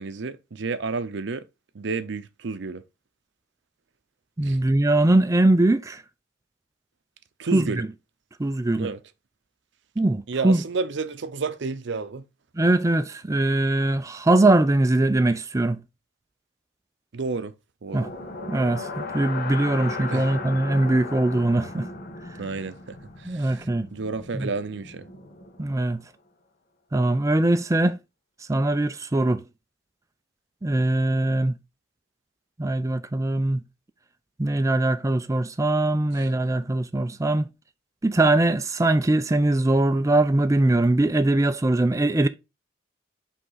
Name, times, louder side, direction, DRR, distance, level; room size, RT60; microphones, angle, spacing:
voice 1, 0.0-1.4 1.7-2.8 4.4-4.6 7.4-7.8 8.8-9.0 10.3-12.2 17.1-17.5 17.8-18.1 20.1-20.3 22.4-25.1 36.2-36.3, right 4 dB, 65° right, 0.6 m, -31 dB
voice 2, 4.4-6.0 7.5-7.9 8.4-8.9 10.0-10.6 12.6-15.8 17.9-18.1 18.5-21.9 23.3-23.9 24.3-24.5 25.6-26.0 26.9-28.0 28.5-29.4 30.6-31.6 32.6-33.6 34.4-37.5 38.0-42.3, right 2 dB, 15° right, 0.4 m, -21 dB
sound 1, 17.9-25.9, left 3 dB, 50° left, 1.3 m, -37 dB
5.5 x 3.6 x 5.6 m
head